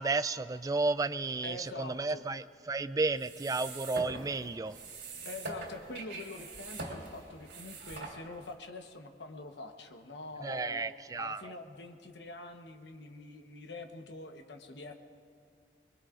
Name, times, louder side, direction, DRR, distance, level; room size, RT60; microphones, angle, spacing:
voice 1, 0.0-4.7 10.4-11.4, right 3 dB, 20° right, 14 dB, 0.3 m, -32 dB
voice 2, 1.4-2.2 5.2-14.9, left 2 dB, 80° left, 5 dB, 1.1 m, -45 dB
sound 1, 3.1-8.5, right 2 dB, 85° right, 2.9 m, -43 dB
24.5 x 22.0 x 2.5 m, 2.3 s
head